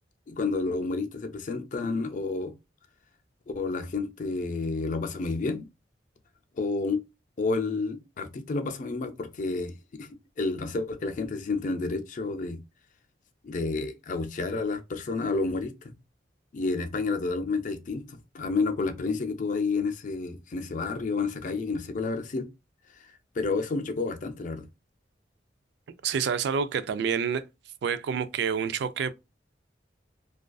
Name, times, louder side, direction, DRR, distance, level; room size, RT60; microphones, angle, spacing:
voice 1, 0.3-2.5 3.5-5.7 6.6-7.0 7.4-10.1 10.4-12.6 13.4-15.9 16.5-22.5 23.4-24.7, left 3 dB, 45° left, 0.4 m, -30 dB
voice 2, 26.0-27.4 27.8-29.1, right 6 dB, 65° right, 0.3 m, -28 dB
2.4 x 2.3 x 2.2 m
head